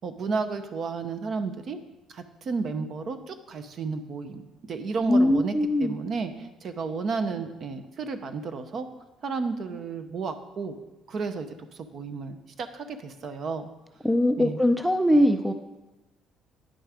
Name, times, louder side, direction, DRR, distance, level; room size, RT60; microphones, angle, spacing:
voice 1, 0.0-1.8 2.1-5.5 5.8-8.9 9.2-10.8 11.1-11.5 11.7-13.7 14.4-14.6, right 4 dB, 40° right, 9 dB, 0.7 m, -32 dB
voice 2, 5.1-6.0 14.0-15.5, left 1 dB, 5° right, 7 dB, 0.4 m, -21 dB
9.9 x 6.2 x 4.9 m, 1.1 s
cardioid pair, 150°, 0 cm